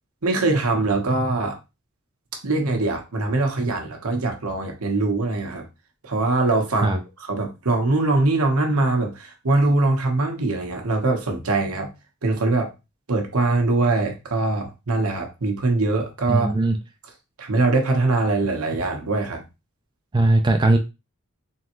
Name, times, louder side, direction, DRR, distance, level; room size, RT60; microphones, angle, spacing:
voice 1, 0.2-1.6 2.4-5.6 6.0-11.9 12.2-12.7 13.1-16.5 17.4-19.4, right 2 dB, 75° right, 3 dB, 1.0 m, -22 dB
voice 2, 16.3-16.8 20.1-20.8, right 2 dB, 20° right, 4 dB, 0.4 m, -18 dB
3.8 x 3.4 x 3.0 m, 0.26 s
head